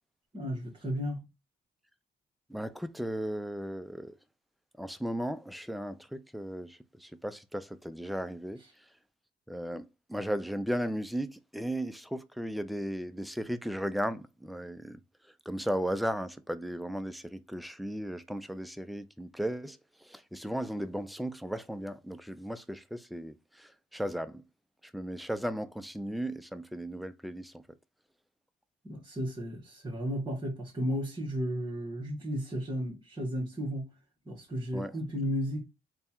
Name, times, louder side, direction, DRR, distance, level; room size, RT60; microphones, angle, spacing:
voice 1, 0.3-1.2 8.6-8.7 28.8-33.9 34.2-35.6, equal, 20° right, 1.4 m, -34 dB
voice 2, 2.5-4.2 4.8-8.6 9.5-15.0 15.5-24.4 24.9-27.6 34.7-34.9, equal, ahead, 0.4 m, -36 dB
3.3 x 2.3 x 4.3 m
cardioid pair, 90°, 20 cm